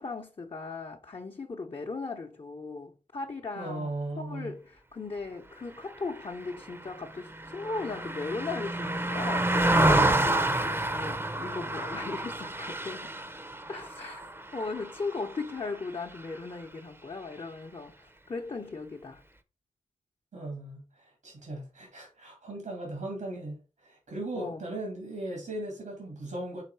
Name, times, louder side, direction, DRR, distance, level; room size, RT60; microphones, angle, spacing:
voice 1, 0.0-3.9 4.2-13.2 13.7-14.3 14.5-19.2 24.3-24.6, left 3 dB, 45° left, 0.9 m, -38 dB
voice 2, 3.6-4.5 20.3-26.6, right 1 dB, 85° right, 2.3 m, -38 dB
Car passing by, 6.2-15.8 16.2-16.4, right 1 dB, 20° right, 0.7 m, -29 dB
5.8 x 3.7 x 4.6 m
cardioid pair, 60°, 13 cm